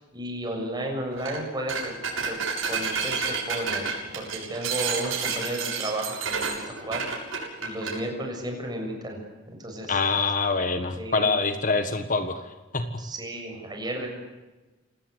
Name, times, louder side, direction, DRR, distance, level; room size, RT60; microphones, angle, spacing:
voice 1, 0.1-1.9 2.2-2.4 2.7-3.9 4.1-9.2 9.5-10.0 11.0-11.3 13.0-14.1, right 1 dB, 20° right, 2 dB, 7.0 m, -33 dB
sound 1, 1.2-1.4 1.7-8.0, right 5 dB, 80° right, 7.4 m, -30 dB
voice 2, 9.9-12.4 12.7-13.0, left 4 dB, 40° left, 8 dB, 1.5 m, -25 dB
26.5 x 18.5 x 8.2 m, 1.1 s
head